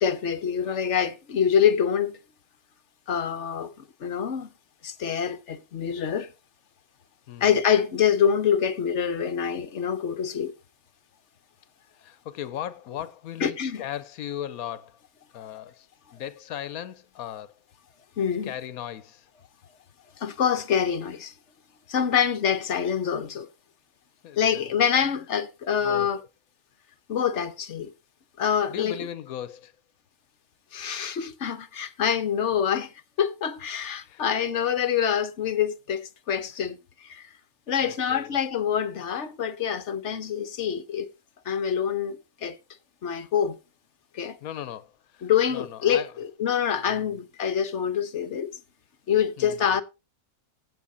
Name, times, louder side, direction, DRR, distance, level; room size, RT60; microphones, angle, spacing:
voice 1, 0.0-2.2 3.1-3.7 4.0-4.5 4.8-6.3 7.4-10.5 13.4-13.8 18.2-18.5 20.2-21.3 21.9-23.5 24.4-26.2 27.1-27.9 28.4-29.0 30.7-32.9 33.2-37.3 37.7-41.1 41.5-42.6 43.0-43.6 44.1-44.4 45.2-48.5 49.1-49.8, left 8 dB, 60° left, 1.1 m, -25 dB
voice 2, 12.0-15.0 15.3-15.9 16.1-17.5 18.4-19.3 24.2-24.7 25.8-26.1 28.7-29.7 34.0-34.2 37.8-38.4 44.4-46.1 46.8-47.2 49.4-49.8, left 10 dB, 85° left, 1.2 m, -37 dB
16.0 x 6.3 x 3.9 m
omnidirectional pair, 1.5 m